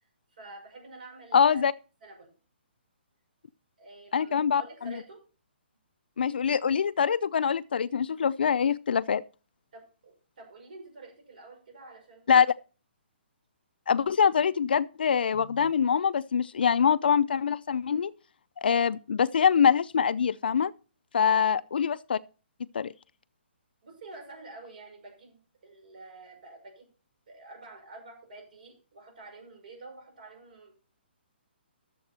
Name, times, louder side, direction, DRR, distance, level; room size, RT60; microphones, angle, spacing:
voice 1, 0.3-1.6 2.0-2.3 3.8-5.2 9.7-12.3 21.3-21.5 23.8-26.9 27.3-30.7, right 2 dB, 50° right, 5.9 m, -48 dB
voice 2, 1.3-1.7 4.1-4.6 6.2-9.2 12.3-12.5 13.9-18.1 18.6-20.7 21.1-22.2 22.7-22.9, left 7 dB, 60° left, 0.5 m, -24 dB
13.0 x 7.7 x 4.2 m
hypercardioid pair, 175°, 6 cm